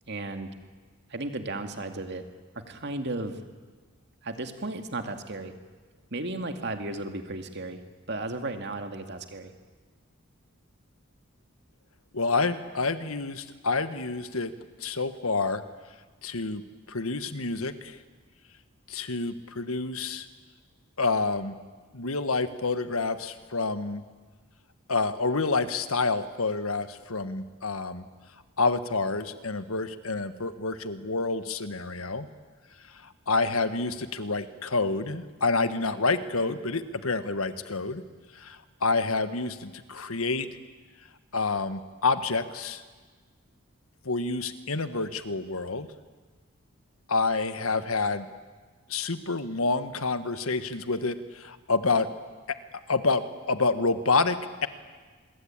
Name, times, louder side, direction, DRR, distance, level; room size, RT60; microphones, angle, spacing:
voice 1, 0.1-0.5 1.1-2.2 2.7-3.4 4.2-5.5 6.1-7.8 8.1-9.5, right 2 dB, 50° right, 6 dB, 2.3 m, -34 dB
voice 2, 12.1-14.5 14.8-15.6 16.2-16.6 16.9-18.0 18.9-20.3 21.0-21.6 21.9-24.0 24.9-28.1 28.6-32.3 33.0-38.0 38.3-40.5 41.3-42.8 44.0-45.9 47.1-48.3 48.9-52.1 52.9-54.7, left 3 dB, 80° left, 11 dB, 1.5 m, -28 dB
25.0 x 22.0 x 9.0 m, 1.4 s
head